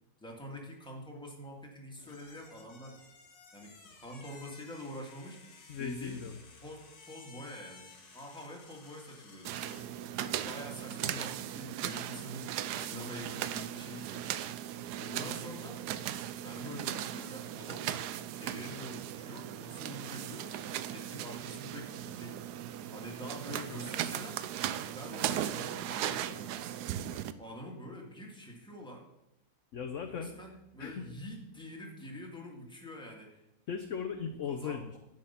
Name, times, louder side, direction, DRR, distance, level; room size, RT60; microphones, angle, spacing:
voice 1, 0.2-2.9 3.5-5.4 5.8-6.2 6.6-9.6 10.2-12.5 12.8-14.3 15.0-15.8 16.4-17.9 18.4-22.4 22.9-24.4 25.0-26.6 27.4-29.0 30.1-33.4 34.5-35.0, equal, 5° left, -1 dB, 2.0 m, -45 dB
sound 1, 2.0-10.0, left 4 dB, 85° left, 2.3 m, -56 dB
voice 2, 5.7-6.4 29.7-30.3 30.8-31.1 33.7-35.0, left 6 dB, 60° left, 7 dB, 0.9 m, -37 dB
sound 2, 9.4-27.3, right 11 dB, 75° right, 1.1 m, -38 dB
10.5 x 7.9 x 5.7 m, 0.90 s
omnidirectional pair, 1.9 m